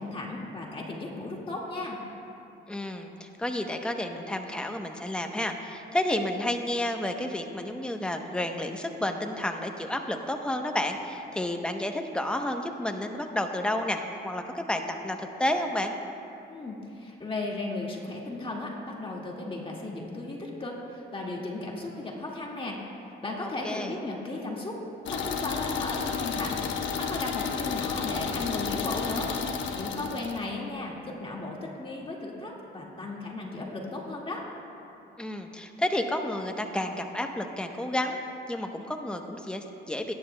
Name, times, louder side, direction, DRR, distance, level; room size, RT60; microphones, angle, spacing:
voice 1, 0.0-2.0 16.5-22.8 23.2-24.8 25.1-26.6 27.0-29.3 29.7-34.5, left 2 dB, 25° left, -2 dB, 1.9 m, -35 dB
voice 2, 2.7-15.9 23.4-23.9 35.2-38.2 38.5-40.1, left 1 dB, 5° left, 4 dB, 0.8 m, -31 dB
sound 1, 25.1-30.5, left 6 dB, 70° left, 1.0 m, -31 dB
19.0 x 10.0 x 2.2 m, 2.7 s
cardioid pair, 90°, 20 cm